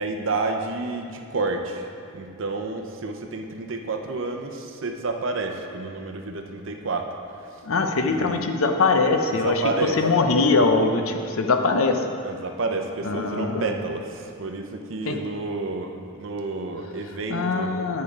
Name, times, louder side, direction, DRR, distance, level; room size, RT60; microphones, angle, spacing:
voice 1, 0.0-7.6 7.9-8.5 9.3-10.0 12.2-17.7, right 3 dB, 65° right, 4 dB, 0.7 m, -30 dB
voice 2, 7.6-9.6 10.0-12.0 13.0-13.7 15.1-15.2 17.3-18.0, left 3 dB, 75° left, 5 dB, 0.6 m, -22 dB
9.4 x 5.2 x 4.6 m, 2.4 s
head